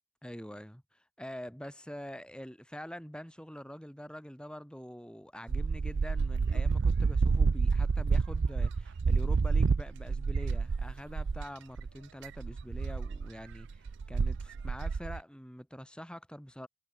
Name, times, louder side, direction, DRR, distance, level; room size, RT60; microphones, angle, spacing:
voice 1, 0.2-16.7, equal, 5° left, 3.7 m, -45 dB
sound 1, 5.5-11.4 11.8-11.9 12.2-15.2, right 4 dB, 60° right, 0.5 m, -29 dB
head